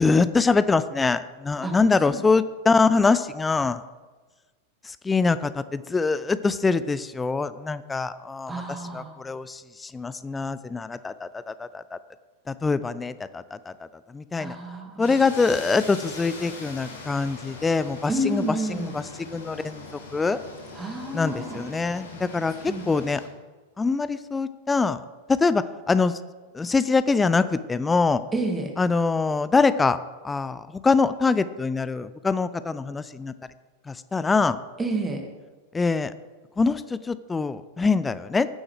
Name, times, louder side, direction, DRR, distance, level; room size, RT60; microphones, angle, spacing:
voice 1, 0.0-3.8 4.8-12.0 12.5-13.7 14.1-14.6 15.0-19.8 20.1-20.4 21.1-23.2 23.8-25.0 25.3-26.2 26.5-28.2 28.8-30.0 30.2-33.3 33.9-34.6 35.7-36.1 36.6-38.5, left 4 dB, 15° left, 14 dB, 0.4 m, -24 dB
voice 2, 8.5-9.2 14.4-15.1 18.1-18.9 20.7-21.7 22.7-22.8 28.3-28.7 34.8-35.2, right 1 dB, 15° right, 2 dB, 2.2 m, -29 dB
sound 1, 15.0-23.3, left 3 dB, 70° left, 2.4 m, -41 dB
16.0 x 9.7 x 3.4 m, 1.3 s
figure-of-eight pair, 90°, 0 cm